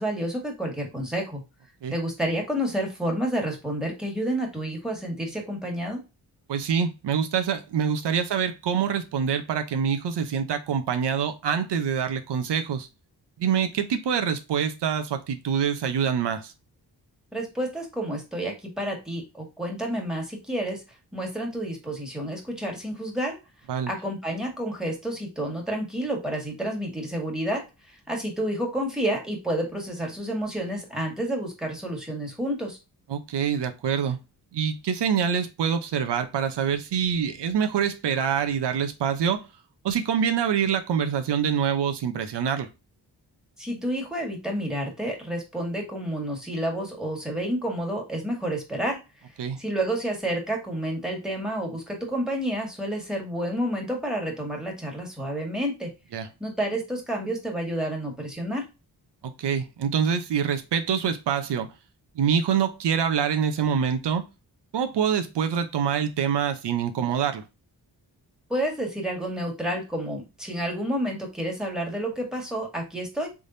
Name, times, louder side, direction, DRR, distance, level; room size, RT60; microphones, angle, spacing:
voice 1, 0.0-1.4 1.9-6.0 17.3-20.8 21.1-23.4 23.9-32.8 43.6-49.0 49.6-55.9 56.4-58.6 68.5-73.3, right 1 dB, ahead, 1.7 m, -30 dB
voice 2, 6.5-12.9 13.4-16.5 23.7-23.9 33.1-34.2 34.5-39.5 39.8-42.7 49.4-49.6 56.1-56.3 59.2-61.7 62.1-64.2 64.7-67.4, right 7 dB, 85° right, 0.8 m, -25 dB
3.6 x 3.4 x 2.6 m
cardioid pair, 90°, 40 cm